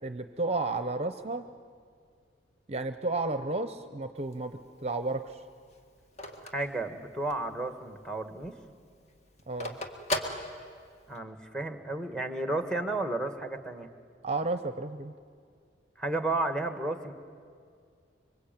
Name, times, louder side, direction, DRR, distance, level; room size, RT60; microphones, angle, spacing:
voice 1, 0.0-1.4 2.7-5.4 9.5-9.8 14.2-15.1, right 3 dB, 35° right, 10 dB, 0.7 m, -32 dB
Telephone, 4.2-7.6 8.0-8.1 8.3-11.2, equal, 35° left, 2.0 m, -37 dB
voice 2, 6.5-8.5 11.1-13.9 16.0-17.1, right 2 dB, 5° left, 8 dB, 1.5 m, -32 dB
26.0 x 24.0 x 9.0 m, 2.2 s
head